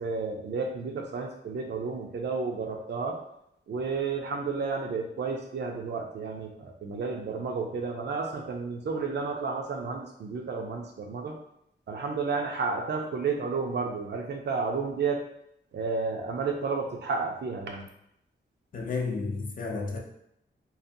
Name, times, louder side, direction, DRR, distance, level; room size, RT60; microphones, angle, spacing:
voice 1, 0.0-3.2 3.7-11.3 11.9-15.2 15.7-17.8, right 4 dB, 60° right, 2 dB, 0.5 m, -31 dB
voice 2, 18.7-20.0, left 4 dB, 45° left, 0 dB, 0.5 m, -31 dB
2.7 x 2.1 x 2.6 m, 0.77 s
wide cardioid pair, 110°, 19 cm